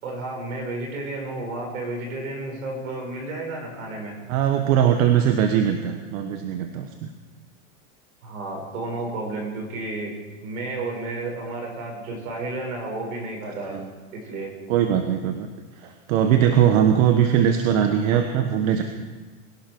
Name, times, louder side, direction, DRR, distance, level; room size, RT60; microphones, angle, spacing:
voice 1, 0.0-4.2 8.2-10.2 10.4-13.8 14.1-14.5, right 2 dB, 85° right, 1 dB, 5.6 m, -32 dB
voice 2, 4.3-7.1 13.6-13.9 14.7-15.5 15.8-18.8, right 9 dB, 70° right, 5 dB, 1.4 m, -20 dB
22.5 x 12.0 x 4.6 m, 1.3 s
supercardioid pair, 125°, 41 cm